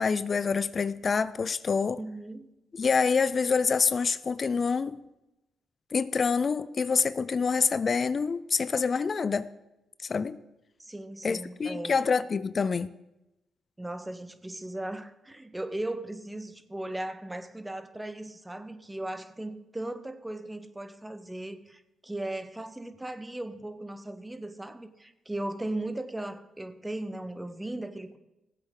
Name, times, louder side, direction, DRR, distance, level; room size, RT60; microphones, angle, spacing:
voice 1, 0.0-2.0 2.8-5.0 5.9-9.5 10.1-10.4 11.2-12.9, left 5 dB, 45° left, 0.4 m, -26 dB
voice 2, 2.0-2.5 10.8-12.0 13.8-28.2, right 1 dB, 15° right, 1.1 m, -37 dB
18.0 x 8.1 x 3.9 m
supercardioid pair, 55°, 0 cm